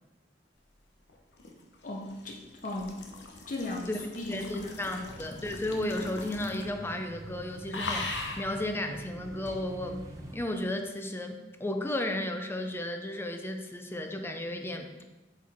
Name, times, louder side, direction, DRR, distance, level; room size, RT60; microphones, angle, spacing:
sound 1, 1.1-6.8 7.1-7.4 7.7-8.5 9.5-9.6, left 3 dB, 85° left, 1.0 m, -40 dB
voice 1, 1.8-3.0 3.5-4.7 5.0-5.1, left 2 dB, 50° left, 0 dB, 0.8 m, -37 dB
voice 2, 4.3-10.0 10.3-14.9, left 1 dB, 15° left, 5 dB, 0.5 m, -34 dB
sound 2, 5.0-10.4, right 1 dB, 20° right, 0.8 m, -46 dB
7.8 x 4.7 x 3.5 m, 1.1 s
head